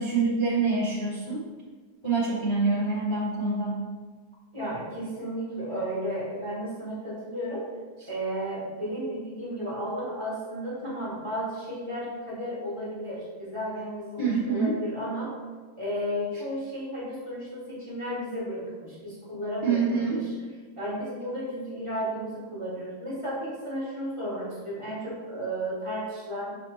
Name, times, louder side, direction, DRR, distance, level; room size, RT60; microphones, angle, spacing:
voice 1, 0.0-1.4 2.0-3.8 14.2-14.7 19.6-20.2, right 4 dB, 20° left, -8 dB, 0.9 m, -26 dB
voice 2, 4.5-7.6 8.1-15.3 15.8-20.3 20.8-26.5, equal, 20° right, -8 dB, 1.6 m, -33 dB
7.1 x 4.6 x 3.2 m, 1.4 s
omnidirectional pair, 1.7 m